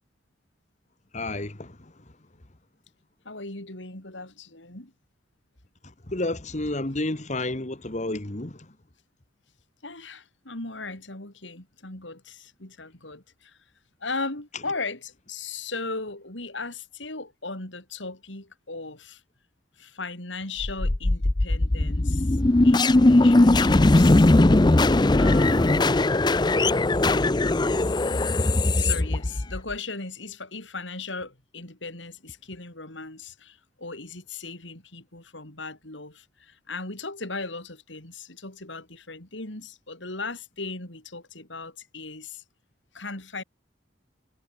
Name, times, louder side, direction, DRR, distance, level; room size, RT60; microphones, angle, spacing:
voice 1, 1.1-1.9 6.1-8.7 28.6-28.7, left 2 dB, 40° left, 1.6 m, -31 dB
voice 2, 3.2-4.9 9.8-13.6 14.0-19.2 19.8-22.4 22.6-24.3 25.2-26.3 28.8-42.4 42.9-43.4, left 3 dB, 85° left, 5.1 m, -37 dB
sound 1, 20.6-29.7, left 2 dB, 25° left, 0.6 m, -19 dB
head